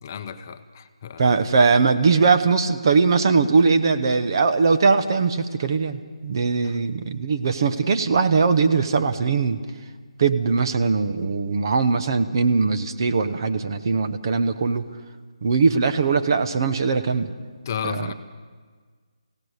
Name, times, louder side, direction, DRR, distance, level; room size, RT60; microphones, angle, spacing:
voice 1, 0.0-1.4 6.6-6.8 17.6-18.1, left 8 dB, 30° left, 8 dB, 0.8 m, -33 dB
voice 2, 1.2-9.6 10.2-14.8 15.4-17.3 17.8-18.1, right 4 dB, 40° right, 8 dB, 1.0 m, -20 dB
23.5 x 17.0 x 6.6 m, 1.6 s
hypercardioid pair, 165°, 3 cm